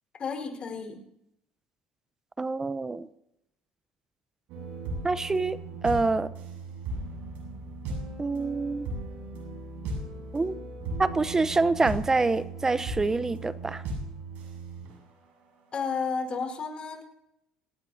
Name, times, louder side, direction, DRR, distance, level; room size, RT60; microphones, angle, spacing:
voice 1, 0.2-1.0 15.7-17.0, left 5 dB, 40° left, 4 dB, 4.8 m, -32 dB
voice 2, 2.4-3.1 5.0-6.3 8.2-8.9 10.3-10.6 11.0-13.8, right 3 dB, 20° right, 15 dB, 0.9 m, -26 dB
sound 1, 4.5-15.2 15.9-16.0, right 2 dB, 75° right, 7.4 m, -37 dB
25.5 x 18.5 x 2.8 m, 0.82 s
supercardioid pair, 80°, 3 cm